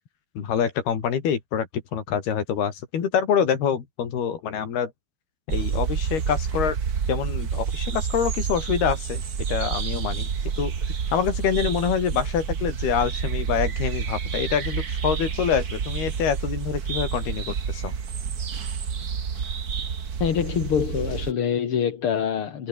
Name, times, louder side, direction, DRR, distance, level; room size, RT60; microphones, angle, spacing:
voice 1, 0.4-4.9 5.5-6.8 7.1-9.2 9.5-10.3 10.6-10.7 11.1-17.9, left 8 dB, 85° left, 5.3 m, -26 dB
sound 1, 5.5-21.3, right 6 dB, 60° right, 0.9 m, -29 dB
voice 2, 20.2-22.7, left 8 dB, 45° left, 2.2 m, -25 dB
omnidirectional pair, 4.4 m